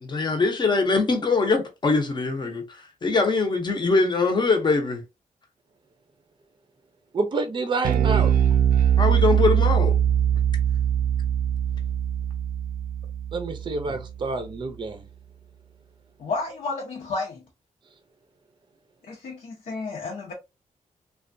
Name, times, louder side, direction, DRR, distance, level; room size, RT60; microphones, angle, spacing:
voice 1, 0.0-5.0 9.0-10.0 13.9-14.0, left 3 dB, 30° left, 0.8 m, -23 dB
voice 2, 7.1-8.3 13.3-15.0, right 3 dB, 35° right, 0.5 m, -28 dB
Bass guitar, 7.8-14.3, right 9 dB, 90° right, 0.4 m, -22 dB
voice 3, 16.2-17.4 19.0-20.3, left 3 dB, 65° left, 0.8 m, -31 dB
3.3 x 2.3 x 2.5 m
wide cardioid pair, 155°, 14 cm